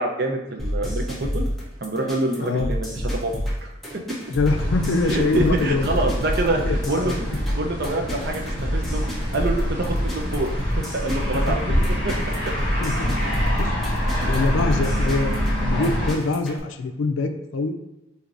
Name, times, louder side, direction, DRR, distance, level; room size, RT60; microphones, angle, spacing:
voice 1, 0.0-1.5 1.8-3.7 5.1-8.4 8.7-9.0 9.3-11.6 12.0-12.1 14.2-14.3, right 2 dB, 55° right, 2 dB, 0.5 m, -26 dB
sound 1, 0.6-16.6, equal, ahead, 0.7 m, -28 dB
voice 2, 2.4-2.7 4.3-6.0 6.7-7.6 11.2-11.9 12.8-13.2 13.6-17.8, left 3 dB, 80° left, 6 dB, 0.4 m, -25 dB
sound 2, 4.5-16.1, equal, 75° right, 1.2 m, -26 dB
4.6 x 2.7 x 2.5 m, 1.0 s
head